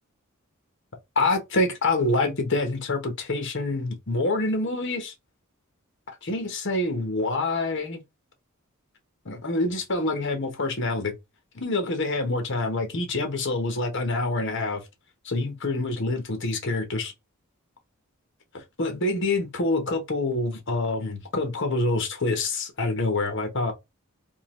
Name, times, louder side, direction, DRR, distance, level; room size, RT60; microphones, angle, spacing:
voice 1, 1.2-5.1 6.2-8.0 9.2-11.1 11.5-14.8 15.2-17.1 18.5-23.7, left 2 dB, 60° left, 1.0 m, -26 dB
3.7 x 2.2 x 3.0 m
head